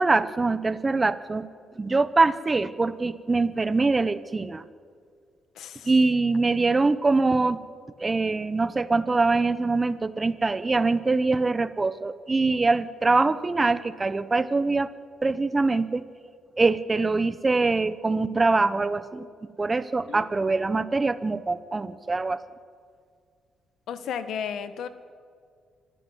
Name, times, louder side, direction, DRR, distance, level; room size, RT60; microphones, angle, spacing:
voice 1, 0.0-1.5 1.8-4.6 5.9-7.6 8.0-14.9 15.2-16.0 16.6-19.3 19.6-22.4, right 3 dB, 25° right, 14 dB, 0.9 m, -23 dB
voice 2, 5.5-5.9 20.1-20.3 23.9-24.9, left 7 dB, 75° left, 11 dB, 1.3 m, -33 dB
25.5 x 13.0 x 9.6 m, 2.2 s
cardioid pair, 90°, 0 cm